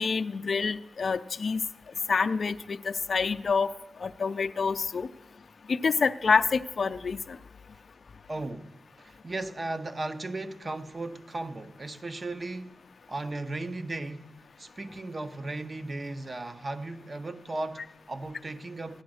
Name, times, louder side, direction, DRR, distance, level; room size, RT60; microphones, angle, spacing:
voice 1, 0.0-1.6 2.1-3.7 4.0-5.1 5.7-7.4, left 5 dB, 60° left, 0.4 m, -27 dB
voice 2, 8.3-12.8 13.1-19.0, right 2 dB, 35° right, 0.7 m, -36 dB
14.5 x 10.5 x 6.3 m
wide cardioid pair, 90°, 0 cm